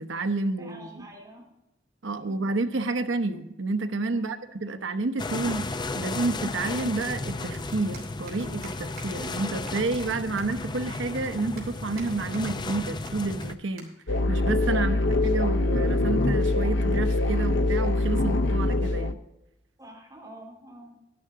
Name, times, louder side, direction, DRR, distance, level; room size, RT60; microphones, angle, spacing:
voice 1, 0.0-1.1 2.0-5.7 5.9-13.9 14.3-15.0 15.2-19.2, right 3 dB, 90° right, 8 dB, 0.9 m, -30 dB
voice 2, 0.6-1.4 2.2-2.5 4.1-4.7 14.7-15.1 19.8-21.0, right 1 dB, 20° right, -3 dB, 3.9 m, -47 dB
sound 1, 5.2-13.6, left 3 dB, 25° left, 0.5 m, -34 dB
sound 2, 7.5-7.6 7.9-8.4 8.6-8.7 9.0-9.1 9.3-9.4 9.7-10.1 10.4-10.5 10.9-11.0 11.6-12.1 12.3-12.8 13.1-13.2 13.4-13.5 13.8-13.9 14.2-14.4 15.2-15.5, right 5 dB, 55° right, 3.3 m, -47 dB
sound 3, 14.1-19.1, left 2 dB, 85° left, 0.7 m, -24 dB
11.5 x 11.0 x 3.8 m, 0.90 s
head